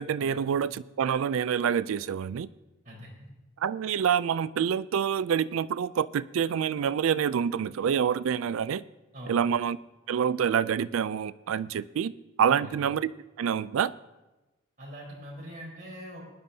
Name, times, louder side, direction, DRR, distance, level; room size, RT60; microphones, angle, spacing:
voice 1, 0.0-2.5 3.6-8.8 9.3-9.8 10.1-12.1 12.4-13.1 13.4-13.9, right 8 dB, 75° right, 17 dB, 0.3 m, -27 dB
voice 2, 2.8-3.3 9.1-9.4 12.4-12.8 14.8-16.4, equal, 40° right, -4 dB, 4.1 m, -43 dB
20.0 x 10.5 x 2.7 m, 1.1 s
head